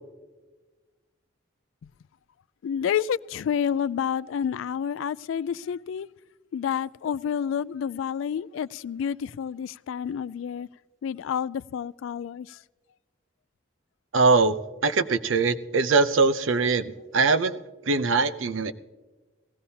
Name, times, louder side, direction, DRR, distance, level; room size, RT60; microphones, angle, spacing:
voice 1, 2.6-6.1 6.5-10.7 11.0-12.6, left 8 dB, 85° left, 0.3 m, -29 dB
voice 2, 14.1-14.6 14.8-17.6 17.9-18.7, right 4 dB, 90° right, 0.6 m, -22 dB
19.5 x 16.0 x 2.8 m
head